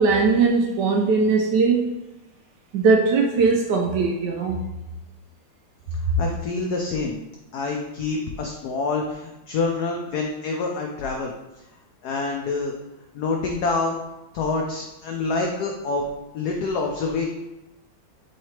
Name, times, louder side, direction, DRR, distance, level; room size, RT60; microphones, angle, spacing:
voice 1, 0.0-1.9 2.7-4.6, right 4 dB, 70° right, 0 dB, 1.0 m, -20 dB
voice 2, 6.2-7.2 7.5-11.3 12.0-12.7 13.1-14.0 14.3-16.1 16.3-17.3, left 3 dB, 90° left, 1 dB, 0.8 m, -26 dB
3.8 x 3.3 x 4.2 m, 0.97 s
omnidirectional pair, 2.2 m